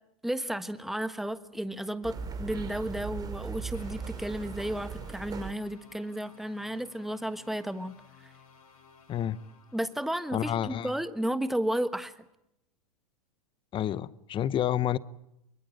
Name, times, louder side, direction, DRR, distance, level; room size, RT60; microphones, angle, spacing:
voice 1, 0.2-8.3 9.7-12.1, right 1 dB, ahead, 1.3 m, -33 dB
sound 1, 2.0-5.5, right 6 dB, 20° right, 2.7 m, -38 dB
sound 2, 3.7-10.2, left 6 dB, 75° left, 6.0 m, -57 dB
voice 2, 10.3-10.9 13.7-15.0, left 11 dB, 25° left, 0.9 m, -29 dB
24.0 x 22.5 x 9.0 m
hypercardioid pair, 105°, 19 cm